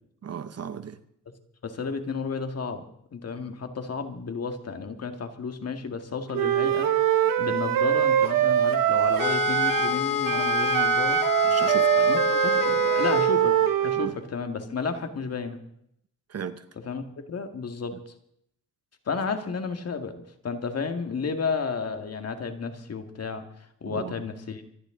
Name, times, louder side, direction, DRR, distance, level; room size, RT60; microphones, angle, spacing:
voice 1, 0.2-1.0 11.5-11.9 14.0-14.1 16.3-16.6 23.8-24.2, right 7 dB, 45° right, 12 dB, 1.0 m, -36 dB
voice 2, 1.6-2.8 3.1-11.2 11.9-15.6 16.8-18.0 19.1-24.6, left 5 dB, 45° left, 7 dB, 1.9 m, -32 dB
Wind instrument woodwind instrument, 6.3-10.0 10.2-14.1, right 11 dB, 80° right, 1.3 m, -23 dB
sound 1, 9.2-13.4, left 10 dB, 80° left, 1.8 m, -28 dB
25.0 x 11.5 x 3.8 m, 0.72 s
cardioid pair, 90°, 34 cm